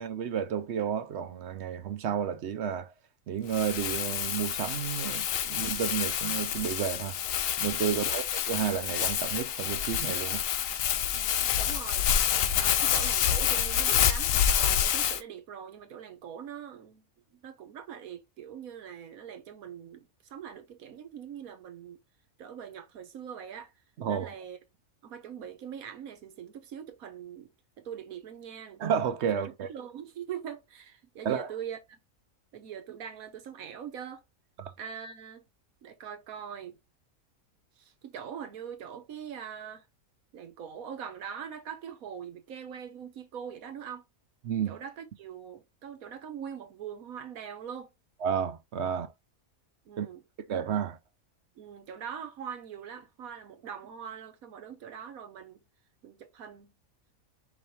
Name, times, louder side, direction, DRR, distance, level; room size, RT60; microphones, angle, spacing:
voice 1, 0.0-2.9 3.3-7.2 7.6-10.7 24.0-24.3 28.8-29.7 31.2-31.5 34.6-34.7 44.4-44.8 48.2-49.1 50.0-50.1 50.4-51.0, right 8 dB, 60° right, 0.8 m, -31 dB
Crumpling crinkling, 3.5-15.2, left 9 dB, 75° left, 1.0 m, -28 dB
voice 2, 11.1-12.1 12.6-17.1 17.3-22.0 22.4-23.7 24.0-24.6 25.0-27.5 27.8-28.8 29.7-32.0 32.5-34.2 34.8-35.4 35.8-36.8 37.8-39.8 40.3-44.0 44.7-47.9 49.9-50.2 51.6-55.6 56.0-56.8, right 8 dB, 85° right, 1.4 m, -42 dB
4.9 x 3.3 x 2.8 m
omnidirectional pair, 1.5 m